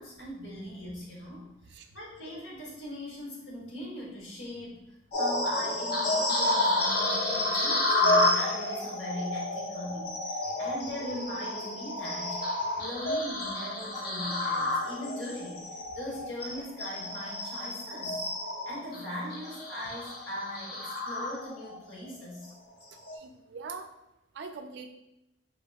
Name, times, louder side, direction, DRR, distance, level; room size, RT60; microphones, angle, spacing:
voice 1, 0.0-4.8 5.2-12.4 12.8-18.3 18.7-22.5, left 1 dB, 80° left, -4 dB, 1.1 m, -40 dB
sound 1, 5.1-21.8 22.2-22.4 23.0-23.2, left 1 dB, 55° left, 0.7 m, -30 dB
voice 2, 23.1-23.9 24.3-24.9, right 4 dB, 60° right, 6 dB, 0.3 m, -42 dB
4.3 x 2.8 x 2.3 m, 0.91 s
head